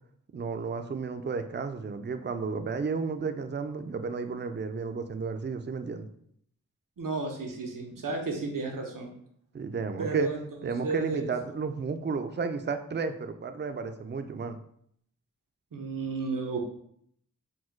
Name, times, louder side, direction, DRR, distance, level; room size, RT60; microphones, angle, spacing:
voice 1, 0.3-6.1 9.5-10.3 10.6-14.6, right 5 dB, 35° right, 8 dB, 0.4 m, -32 dB
voice 2, 7.0-9.1 10.0-11.3 15.7-16.6, right 3 dB, 90° right, 1 dB, 0.8 m, -33 dB
4.2 x 2.2 x 4.4 m, 0.68 s
wide cardioid pair, 50°, 32 cm